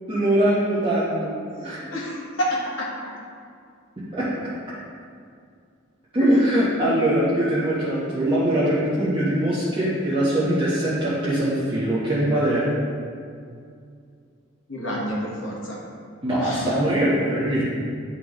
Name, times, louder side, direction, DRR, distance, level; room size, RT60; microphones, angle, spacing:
voice 1, 0.1-1.3 1.6-1.8 4.1-4.2 6.1-12.6 16.2-17.6, right 1 dB, 25° right, -11 dB, 1.1 m, -22 dB
voice 2, 1.5-3.1 6.2-6.6 14.7-15.8 16.4-16.7, left 1 dB, 75° left, -4 dB, 1.5 m, -28 dB
10.5 x 3.9 x 3.1 m, 2.3 s
head